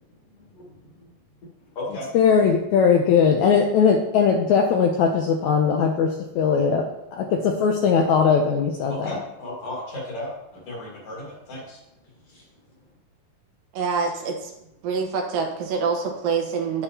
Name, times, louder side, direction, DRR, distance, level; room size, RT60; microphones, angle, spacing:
voice 1, 0.3-1.1 1.4-2.1 8.9-12.8, left 1 dB, 50° left, -3 dB, 2.6 m, -36 dB
voice 2, 2.1-6.8 7.1-9.2, left 6 dB, 80° left, 2 dB, 1.7 m, -19 dB
voice 3, 13.7-14.5 14.8-16.8, right 5 dB, 85° right, 2 dB, 2.9 m, -26 dB
9.9 x 7.3 x 2.8 m, 0.90 s
omnidirectional pair, 3.9 m